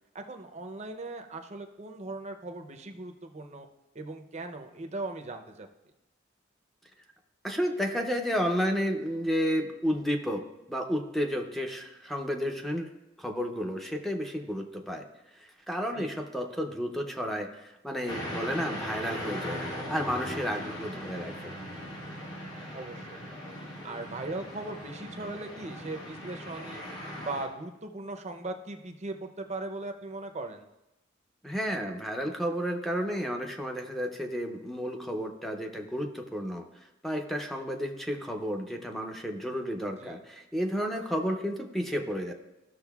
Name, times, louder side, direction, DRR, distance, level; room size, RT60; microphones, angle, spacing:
voice 1, 0.1-3.7 3.9-5.7 15.9-16.1 22.7-23.2 23.8-26.8 27.2-30.7 40.0-40.2, right 2 dB, 35° right, 5 dB, 0.6 m, -39 dB
voice 2, 7.4-12.9 13.2-15.0 15.3-21.5 31.4-42.3, equal, ahead, 2 dB, 0.6 m, -32 dB
sound 1, 18.1-27.5, equal, 80° left, 1.4 m, -39 dB
14.0 x 6.2 x 2.3 m, 0.94 s
head